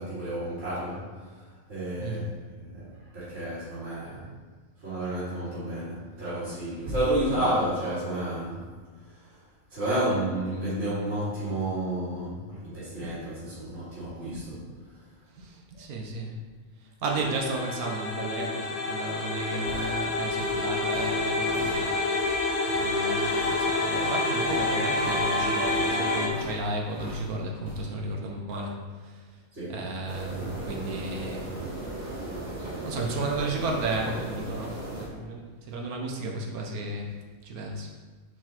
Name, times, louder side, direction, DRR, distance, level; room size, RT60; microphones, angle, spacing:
voice 1, 0.0-4.2 4.8-8.6 9.0-9.4 9.7-14.9 15.4-15.5 15.7-15.8 29.5-29.8, right 1 dB, 50° right, -14 dB, 2.4 m, -31 dB
voice 2, 15.4-16.3 16.8-29.3 29.7-31.5 32.0-32.4 32.8-37.1 37.4-37.9, right 2 dB, 85° right, 0 dB, 1.4 m, -34 dB
sound 1, 17.0-26.3, left 2 dB, 35° left, 0.7 m, -28 dB
sound 2, 19.6-27.8, equal, 60° left, 2.7 m, -43 dB
sound 3, 30.1-35.1, right 1 dB, 30° right, 1.4 m, -36 dB
6.8 x 4.3 x 4.4 m, 1.4 s
omnidirectional pair, 1.5 m